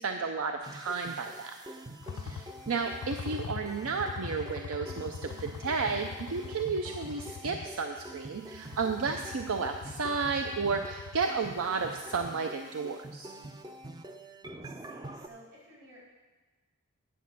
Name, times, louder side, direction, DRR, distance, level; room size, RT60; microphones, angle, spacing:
voice 1, 0.0-1.6 2.1-13.3, right 4 dB, 75° right, 5 dB, 0.5 m, -32 dB
sound 1, 0.6-15.3, right 1 dB, 20° right, 0.4 m, -46 dB
sound 2, 2.0-12.3, left 6 dB, 85° left, 0.4 m, -43 dB
voice 2, 14.6-16.0, right 1 dB, 45° right, -6 dB, 4.0 m, -54 dB
9.4 x 7.2 x 5.9 m, 1.2 s
head